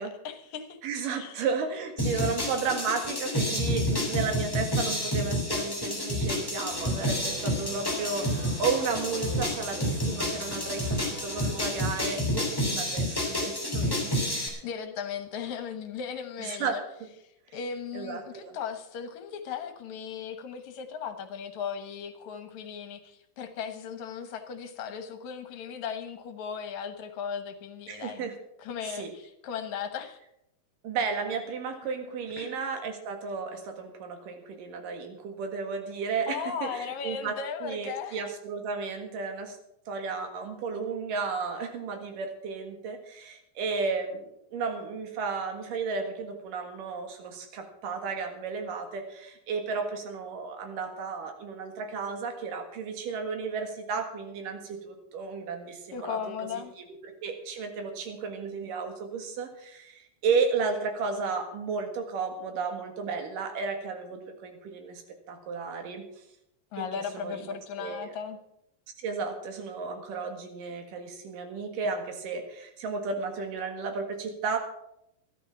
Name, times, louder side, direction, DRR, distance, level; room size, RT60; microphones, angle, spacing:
voice 1, 0.0-0.8 1.1-1.4 2.1-2.4 14.3-16.8 17.5-28.3 28.6-30.2 32.4-32.6 36.3-38.2 55.9-56.7 66.7-68.4, left 7 dB, 65° left, 8 dB, 2.4 m, -37 dB
voice 2, 0.8-14.5 16.4-16.8 17.9-18.5 27.9-28.3 28.9-29.1 30.8-39.6 39.9-56.2 56.8-56.9 57.2-65.0 65.3-66.0 66.8-66.9 67.1-68.2 69.0-74.6, right 5 dB, 80° right, 5 dB, 3.4 m, -33 dB
sound 1, 2.0-14.5, left 1 dB, 5° left, 2.8 m, -29 dB
sound 2, 6.7-11.7, right 2 dB, 45° right, 3.9 m, -44 dB
13.0 x 12.0 x 5.8 m, 0.79 s
omnidirectional pair, 3.8 m